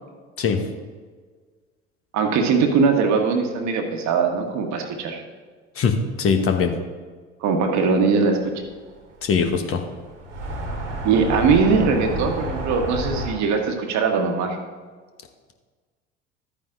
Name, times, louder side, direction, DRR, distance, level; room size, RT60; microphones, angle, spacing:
voice 1, 2.1-5.2 7.4-8.4 11.0-14.6, right 5 dB, 50° right, 4 dB, 1.4 m, -20 dB
voice 2, 5.8-6.7 9.2-9.8, left 5 dB, 40° left, 5 dB, 1.1 m, -21 dB
sound 1, 8.4-8.7 9.2-13.6, right 1 dB, 80° right, 1.9 m, -30 dB
12.5 x 9.0 x 2.6 m, 1.5 s
figure-of-eight pair, 65°, 36 cm